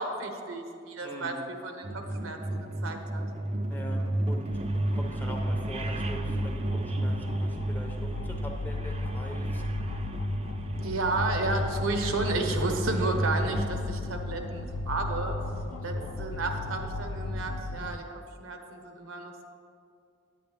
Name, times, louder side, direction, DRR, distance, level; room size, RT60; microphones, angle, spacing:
voice 1, 0.0-3.2 10.8-15.4 15.8-18.0 18.4-19.4, right 2 dB, 70° right, 5 dB, 0.9 m, -32 dB
voice 2, 1.0-1.4 3.7-9.6 11.7-11.8 12.9-13.0 15.7-16.5, equal, 10° left, 1 dB, 0.7 m, -43 dB
sound 1, 1.8-13.7, right 1 dB, 30° right, 0.4 m, -32 dB
sound 2, 4.5-18.0, left 2 dB, 85° left, 0.5 m, -36 dB
9.1 x 9.0 x 3.4 m, 2.4 s
head